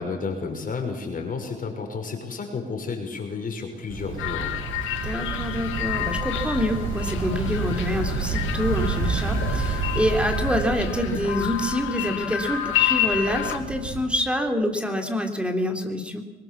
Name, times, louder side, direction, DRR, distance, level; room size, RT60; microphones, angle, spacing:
voice 1, 0.0-4.5, left 4 dB, 45° left, 2 dB, 5.9 m, -31 dB
sound 1, 3.9-14.0, right 4 dB, 85° right, 5.4 m, -30 dB
sound 2, 4.2-13.6, left 12 dB, 85° left, 2.0 m, -30 dB
voice 2, 5.0-16.2, left 1 dB, 5° right, 4 dB, 3.4 m, -26 dB
23.0 x 20.0 x 7.3 m, 1.2 s
cardioid pair, 90°, 20 cm